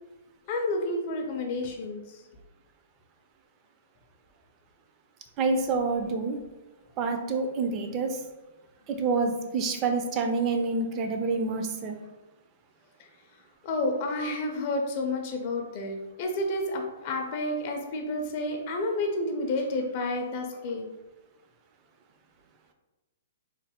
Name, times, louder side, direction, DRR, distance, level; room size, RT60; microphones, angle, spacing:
voice 1, 0.5-2.2 13.6-20.9, left 2 dB, 45° left, 3 dB, 0.4 m, -30 dB
voice 2, 5.4-6.4 7.0-8.2 8.9-12.0, right 4 dB, 25° right, 4 dB, 0.4 m, -27 dB
3.1 x 2.1 x 2.8 m, 1.1 s
hypercardioid pair, 150°, 0 cm